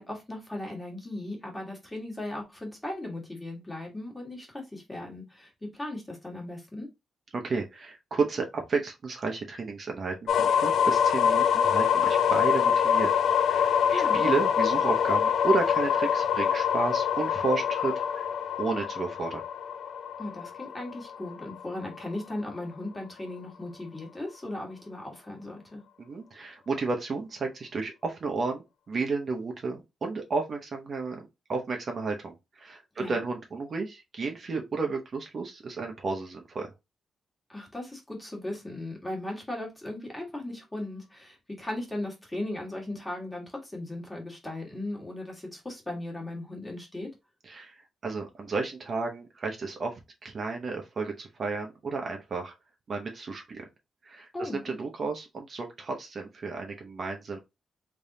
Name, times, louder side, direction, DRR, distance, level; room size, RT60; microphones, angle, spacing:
voice 1, 0.0-6.9 13.9-14.2 20.2-25.8 33.0-33.2 37.5-47.1 54.3-54.7, left 1 dB, 10° left, 1.5 m, -37 dB
voice 2, 7.3-13.1 13.4-18.3 18.6-19.4 26.0-36.7 47.4-52.5 52.9-53.7 54.0-57.4, right 4 dB, 40° right, 0.8 m, -32 dB
sound 1, 10.3-22.1, left 8 dB, 70° left, 0.3 m, -25 dB
3.5 x 3.5 x 2.7 m
wide cardioid pair, 140°, 0 cm